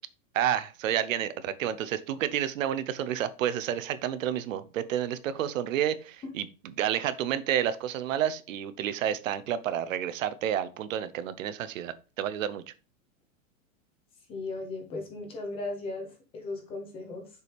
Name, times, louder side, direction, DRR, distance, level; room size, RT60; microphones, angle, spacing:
voice 1, 0.3-12.6, right 10 dB, 70° right, 14 dB, 0.8 m, -30 dB
voice 2, 14.3-17.3, left 2 dB, 15° left, 3 dB, 0.8 m, -37 dB
6.7 x 4.7 x 3.4 m, 0.33 s
supercardioid pair, 175°, 40 cm